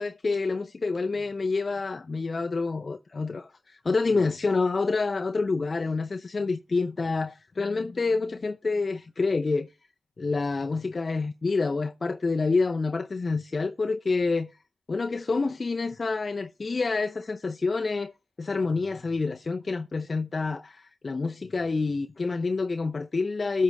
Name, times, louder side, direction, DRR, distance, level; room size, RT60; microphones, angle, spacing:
voice 1, 0.0-9.7 10.2-14.5 14.9-18.1 18.4-23.6, left 3 dB, 50° left, 0.6 m, -27 dB
13.0 x 7.6 x 3.5 m
cardioid pair, 70°, 0 cm